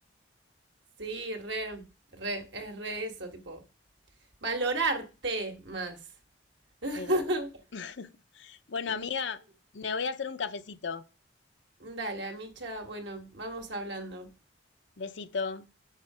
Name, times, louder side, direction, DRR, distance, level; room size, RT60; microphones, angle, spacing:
voice 1, 1.0-1.8 2.1-3.6 4.4-6.0 6.8-7.5 8.9-9.0 11.8-14.3, right 2 dB, 65° right, 1.6 m, -33 dB
voice 2, 7.7-8.1 8.3-9.4 9.7-11.0 15.0-15.7, left 5 dB, 65° left, 0.7 m, -34 dB
8.4 x 6.6 x 4.9 m
head